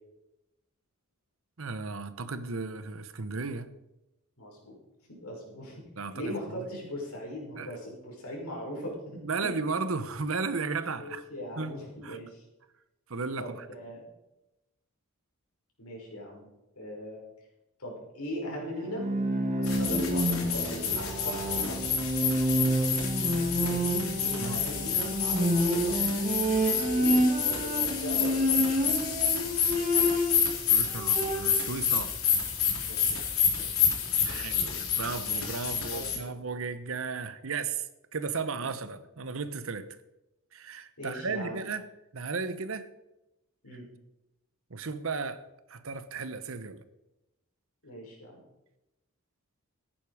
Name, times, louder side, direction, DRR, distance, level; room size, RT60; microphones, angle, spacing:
voice 1, 1.6-3.7 6.0-6.3 7.6-7.7 9.2-11.2 11.6-11.8 12.0-12.2 13.1-13.7 24.4-24.6 30.7-32.2 34.2-37.9 38.1-40.0 40.5-41.9 42.1-42.9 44.7-46.8, right 4 dB, 65° right, 1.0 m, -35 dB
voice 2, 4.4-4.8 5.1-5.8 6.1-9.0 9.4-9.5 10.9-12.4 13.4-14.0 15.8-16.5 16.8-17.2 17.8-19.1 19.6-21.9 23.5-26.1 26.6-29.0 32.8-33.2 33.6-34.8 35.7-36.3 38.6-38.7 41.0-41.6 43.6-43.9 47.8-48.4, equal, 90° left, 5.7 m, -40 dB
Bowed string instrument, 18.8-30.5 30.9-31.7, equal, 35° right, 1.9 m, -28 dB
sound 1, 19.6-36.2, left 7 dB, 75° left, 3.0 m, -29 dB
15.0 x 10.0 x 5.0 m
head